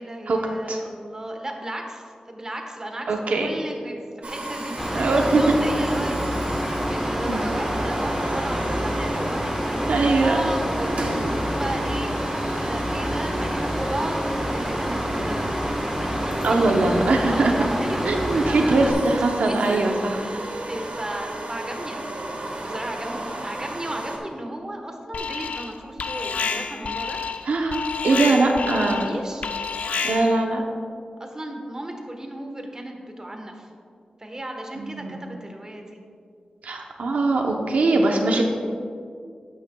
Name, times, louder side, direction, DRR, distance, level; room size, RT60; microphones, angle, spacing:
voice 1, 0.0-3.1 3.4-6.2 6.6-15.5 16.0-19.2 19.5-19.8 20.2-22.2 22.6-27.2 28.8-29.4 31.2-33.7 34.2-36.0, right 1 dB, 25° right, 3 dB, 1.2 m, -34 dB
voice 2, 3.1-3.5 4.9-5.4 7.3-7.5 9.9-10.4 16.4-17.5 18.0-20.2 27.4-29.1 30.0-30.6 34.8-35.2 36.6-38.4, right 2 dB, 80° right, 2 dB, 0.8 m, -21 dB
sound 1, 4.2-24.2, right 1 dB, 65° right, 1.5 m, -33 dB
Mechanical fan, 4.8-18.9, equal, ahead, 1.2 m, -27 dB
Alarm, 25.1-25.7 26.0-30.4, left 5 dB, 75° left, 0.5 m, -29 dB
12.0 x 9.1 x 2.3 m, 2.2 s
wide cardioid pair, 75°, 2 cm